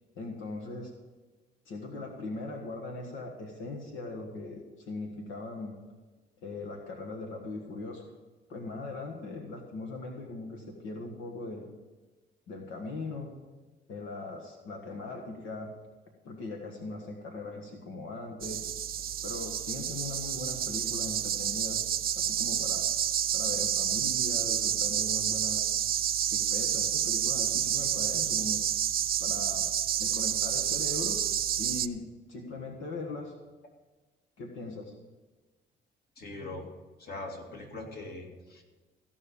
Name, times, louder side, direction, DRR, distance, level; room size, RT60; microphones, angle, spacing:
voice 1, 0.1-0.9 1.6-6.0 6.4-8.1 8.5-11.7 12.5-13.3 13.9-15.7 16.2-18.6 19.2-21.9 22.1-22.9 23.3-25.7 26.3-28.7 29.2-29.7 30.0-31.2 31.6-33.3 34.4-34.9, left 2 dB, 85° left, 1 dB, 1.6 m, -39 dB
sound 1, 18.4-31.9, right 10 dB, 50° right, 0.5 m, -29 dB
voice 2, 36.2-36.7 37.0-38.6, left 2 dB, 50° left, 2 dB, 2.3 m, -41 dB
16.0 x 5.5 x 6.9 m, 1.3 s
cardioid pair, 90°, 20 cm